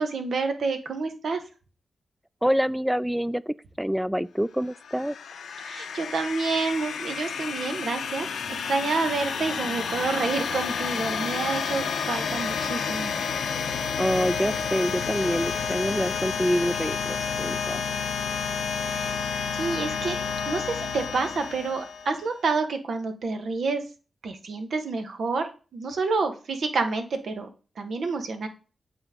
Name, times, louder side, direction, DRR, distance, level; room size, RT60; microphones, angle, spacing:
voice 1, 0.0-1.4 5.6-13.2 18.8-19.1 19.5-23.8 24.2-27.5 27.8-28.5, right 4 dB, 75° right, 1.0 m, -29 dB
voice 2, 2.4-5.1 14.0-17.8, equal, 5° right, 0.3 m, -26 dB
sound 1, 4.7-22.3, left 6 dB, 85° left, 0.7 m, -30 dB
8.0 x 3.9 x 3.6 m
cardioid pair, 50°, 0 cm